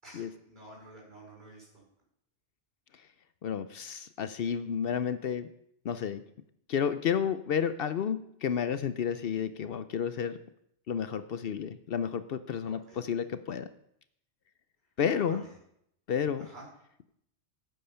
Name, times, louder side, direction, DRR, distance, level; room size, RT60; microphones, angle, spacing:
voice 1, 0.0-1.6 12.6-13.0 15.1-15.5 16.4-16.6, right 1 dB, 40° right, -3 dB, 5.1 m, -50 dB
voice 2, 3.4-5.5 5.8-6.2 6.7-10.4 10.9-13.7 15.0-15.4 16.1-16.5, left 7 dB, 60° left, 12 dB, 0.7 m, -31 dB
9.2 x 8.7 x 5.7 m, 0.72 s
omnidirectional pair, 1.2 m